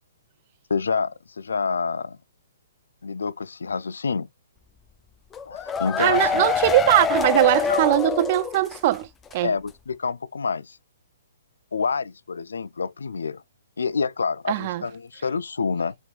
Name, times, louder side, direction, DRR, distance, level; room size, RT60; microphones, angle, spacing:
voice 1, 0.7-2.2 3.0-4.3 5.5-6.4 7.7-7.8 9.4-10.8 11.7-13.4 13.8-16.0, left 5 dB, 80° left, 0.3 m, -27 dB
sound 1, 5.3-9.0 9.3-9.4 9.7-9.8, left 7 dB, 15° left, 0.5 m, -26 dB
voice 2, 6.0-9.5 14.5-14.8, right 15 dB, 45° right, 0.3 m, -21 dB
4.3 x 4.0 x 2.4 m
hypercardioid pair, 135°, 0 cm